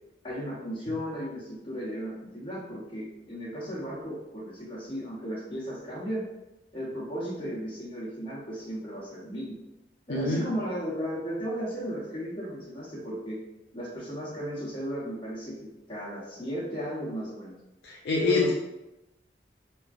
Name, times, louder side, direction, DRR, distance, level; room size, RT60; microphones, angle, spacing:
voice 1, 0.2-6.2 6.7-9.6 10.1-13.4 13.7-17.5 18.2-18.5, equal, 30° left, -6 dB, 0.9 m, -35 dB
voice 2, 10.1-10.5 17.8-18.5, left 3 dB, 65° left, -2 dB, 0.4 m, -26 dB
3.1 x 2.3 x 2.5 m, 0.98 s
head